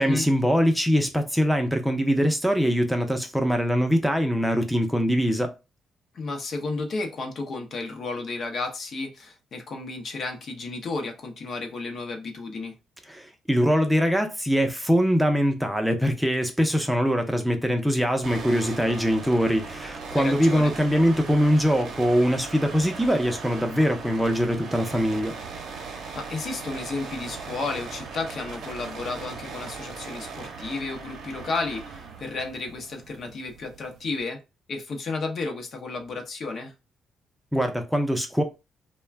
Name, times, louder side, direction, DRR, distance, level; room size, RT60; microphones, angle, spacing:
voice 1, 0.0-5.6 13.1-25.3 37.5-38.4, equal, 5° right, 0.5 m, -23 dB
voice 2, 6.1-12.8 20.1-20.7 26.1-34.4 34.7-36.7, left 3 dB, 55° left, 0.6 m, -32 dB
sound 1, 18.2-34.2, right 4 dB, 65° right, 0.6 m, -39 dB
2.3 x 2.1 x 3.3 m
cardioid pair, 90°, 0 cm